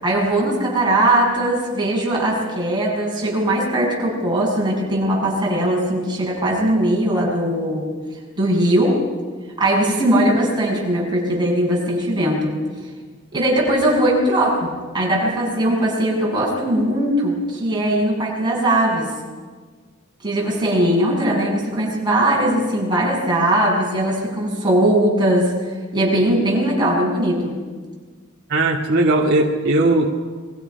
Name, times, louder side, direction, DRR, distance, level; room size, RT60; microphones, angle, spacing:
voice 1, 0.0-7.9 8.4-9.0 9.6-12.6 13.3-19.1 20.2-27.6, right 1 dB, 20° right, -2 dB, 7.4 m, -19 dB
voice 2, 28.5-30.2, right 2 dB, 50° right, -3 dB, 2.1 m, -18 dB
29.5 x 23.0 x 6.0 m, 1.5 s
head